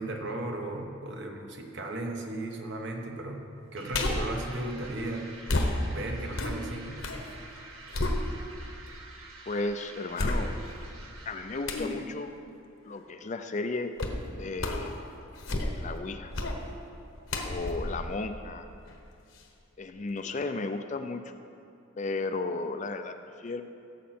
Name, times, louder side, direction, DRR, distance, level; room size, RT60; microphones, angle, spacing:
voice 1, 0.0-3.4 3.7-5.3 5.9-7.0, right 2 dB, 55° right, 2 dB, 1.2 m, -35 dB
sound 1, 3.8-12.0, right 3 dB, 80° right, 1.5 m, -48 dB
sound 2, 3.9-4.4 5.5-7.3 7.6-8.7 9.2-9.3 10.2-10.8 11.7-12.0 14.0-14.2 14.6-14.9 15.3-15.9 16.3-16.6 17.3-19.0 19.4-19.5, left 1 dB, 70° left, 1.2 m, -31 dB
voice 2, 9.5-10.5 11.3-12.3 12.8-13.9 14.3-15.0 15.8-16.4 17.4-18.7 19.8-21.3 22.0-23.6, left 3 dB, 35° left, 8 dB, 0.4 m, -34 dB
16.5 x 7.4 x 4.3 m, 2.6 s
head